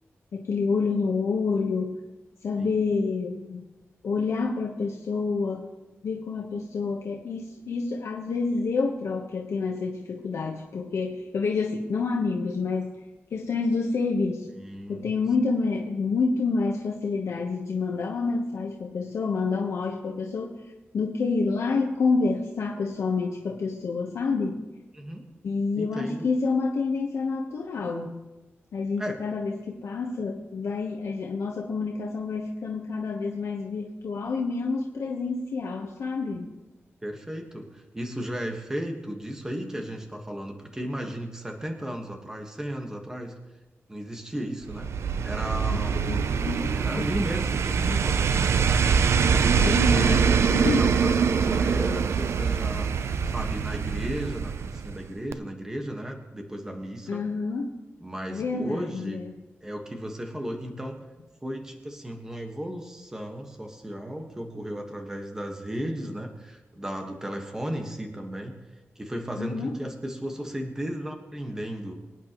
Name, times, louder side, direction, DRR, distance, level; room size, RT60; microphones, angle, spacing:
voice 1, 0.3-2.0 2.4-3.6 4.0-5.7 6.0-13.0 13.3-14.5 14.9-20.6 20.9-24.6 25.4-28.2 28.7-36.5 45.7-47.0 49.5-51.0 57.1-57.7 58.3-59.3 69.4-69.8, left 4 dB, 85° left, -1 dB, 1.1 m, -28 dB
voice 2, 14.5-15.1 24.9-25.2 25.8-26.3 29.0-29.2 37.0-43.3 43.9-44.9 45.2-46.0 46.7-48.7 49.2-49.5 50.0-52.9 53.3-57.2 58.0-59.2 59.6-61.0 61.4-68.5 68.9-71.9, equal, 10° right, 3 dB, 1.5 m, -35 dB
sound 1, 44.7-55.1 55.3-55.4, right 6 dB, 75° right, 0.5 m, -24 dB
24.5 x 9.4 x 3.1 m, 1.1 s
wide cardioid pair, 165°, 5 cm